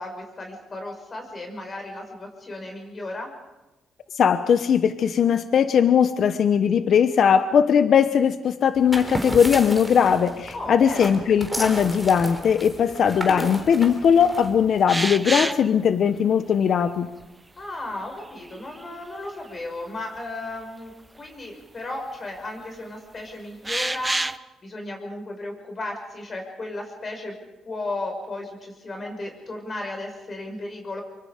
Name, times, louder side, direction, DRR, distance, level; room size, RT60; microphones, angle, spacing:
voice 1, 0.0-3.3 10.5-11.1 17.6-20.9 21.2-24.2 24.6-27.3 27.7-31.0, left 2 dB, 35° left, 3 dB, 6.1 m, -34 dB
voice 2, 4.2-17.1, left 7 dB, 60° left, 11 dB, 1.0 m, -19 dB
sound 1, 8.8-14.8, equal, ahead, 3.6 m, -33 dB
sound 2, 14.9-15.7 17.2-17.3 18.2-19.0 19.4-19.5 21.5-21.6 23.6-24.4, right 2 dB, 15° right, 0.6 m, -27 dB
25.0 x 24.0 x 5.2 m, 1.1 s
cardioid pair, 90°, 0 cm